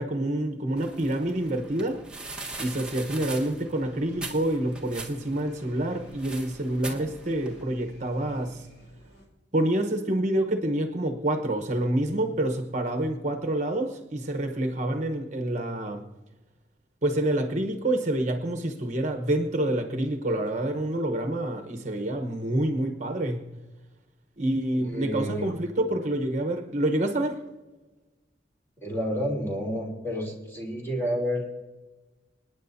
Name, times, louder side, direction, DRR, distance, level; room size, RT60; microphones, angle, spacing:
voice 1, 0.0-2.0 2.6-8.7 9.5-16.0 17.0-23.5 24.4-27.4, right 1 dB, 40° right, 5 dB, 1.0 m, -27 dB
sound 1, 0.8-7.6, right 2 dB, 5° right, 1.3 m, -41 dB
sound 2, 3.4-9.3, equal, 65° left, 5.6 m, -54 dB
voice 2, 24.8-25.5 28.8-31.4, equal, 15° left, -2 dB, 3.0 m, -30 dB
27.5 x 9.6 x 2.7 m, 1.1 s
head